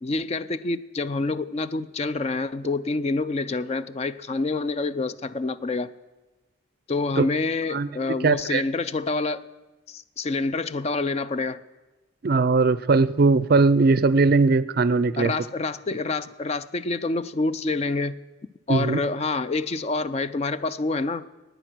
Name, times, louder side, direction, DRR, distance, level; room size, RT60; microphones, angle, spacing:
voice 1, 0.0-5.9 6.9-9.4 9.9-11.6 15.2-18.2 18.7-21.3, left 3 dB, 30° left, 0.4 m, -27 dB
voice 2, 8.2-8.6 12.2-15.4 18.7-19.0, right 3 dB, 50° right, 0.4 m, -19 dB
18.0 x 9.1 x 6.1 m
head